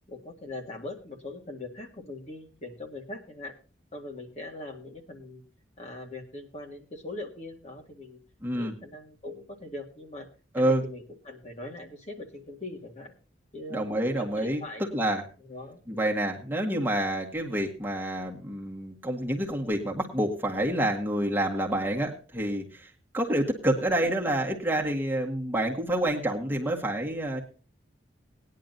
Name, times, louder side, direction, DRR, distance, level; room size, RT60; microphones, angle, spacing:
voice 1, 0.1-3.5 3.9-5.4 5.8-8.2 8.5-10.3 10.6-13.1 13.5-13.9 14.1-14.9 15.4-16.1, left 2 dB, 35° left, 3 dB, 2.1 m, -41 dB
voice 2, 8.4-8.7 10.5-10.8 13.7-14.6 14.9-15.2 15.9-27.4, right 1 dB, 10° right, -1 dB, 1.7 m, -28 dB
19.0 x 10.5 x 2.6 m, 0.35 s
head